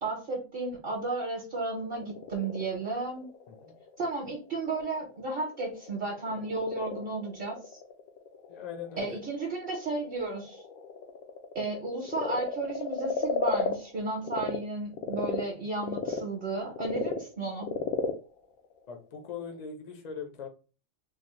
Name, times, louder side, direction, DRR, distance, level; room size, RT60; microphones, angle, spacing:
voice 1, 0.0-3.3 4.0-7.8 9.0-10.6 11.5-17.7, right 3 dB, 50° right, 0 dB, 1.0 m, -33 dB
Frog, 1.7-14.6 14.9-19.6, left 6 dB, 85° left, 1.0 m, -36 dB
voice 2, 8.5-9.2 18.9-20.5, left 6 dB, 45° left, 3 dB, 0.6 m, -40 dB
3.5 x 2.0 x 3.0 m, 0.33 s
omnidirectional pair, 1.4 m